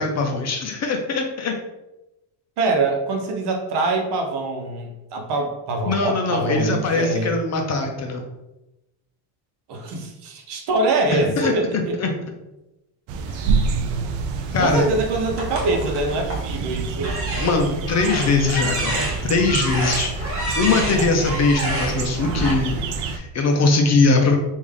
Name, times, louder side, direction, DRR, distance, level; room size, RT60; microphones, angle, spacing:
voice 1, 0.0-1.5 5.9-8.2 11.1-12.1 13.4-13.5 14.5-14.9 17.3-24.4, left 3 dB, 35° left, 3 dB, 0.6 m, -21 dB
voice 2, 2.6-7.3 9.7-12.0 14.6-17.2, right 2 dB, 60° right, 2 dB, 0.9 m, -24 dB
sound 1, 13.1-23.2, right 4 dB, 75° right, 0.6 m, -27 dB
sound 2, 15.3-16.5 17.0-22.5, right 1 dB, 30° right, 1.3 m, -29 dB
3.5 x 2.6 x 3.3 m, 0.96 s
cardioid pair, 115°, 46 cm